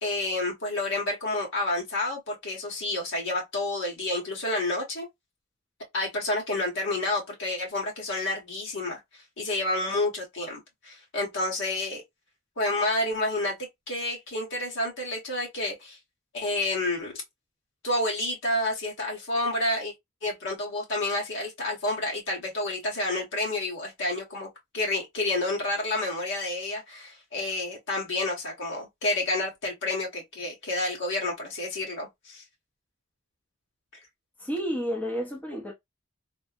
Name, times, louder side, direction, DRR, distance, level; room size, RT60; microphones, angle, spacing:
voice 1, 0.0-5.1 5.9-9.0 9.4-12.0 12.6-13.6 13.9-16.0 16.3-17.1 17.8-19.9 20.2-32.4, left 2 dB, 60° left, 1.2 m, -29 dB
voice 2, 34.4-35.7, equal, 5° left, 0.6 m, -30 dB
3.5 x 2.0 x 2.4 m
head